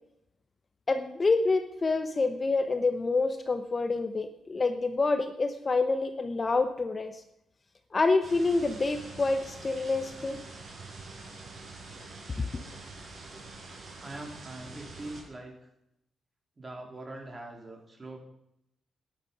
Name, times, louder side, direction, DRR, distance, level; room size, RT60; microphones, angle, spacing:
voice 1, 0.9-7.2 7.9-10.4 12.4-12.5, left 3 dB, 30° left, 8 dB, 0.9 m, -27 dB
sound 1, 8.2-15.2, right 3 dB, 55° right, 4.9 m, -46 dB
voice 2, 14.0-15.7 16.6-18.2, right 2 dB, 30° right, 1 dB, 3.2 m, -43 dB
12.0 x 10.0 x 5.8 m, 0.79 s
cardioid pair, 110°, 0 cm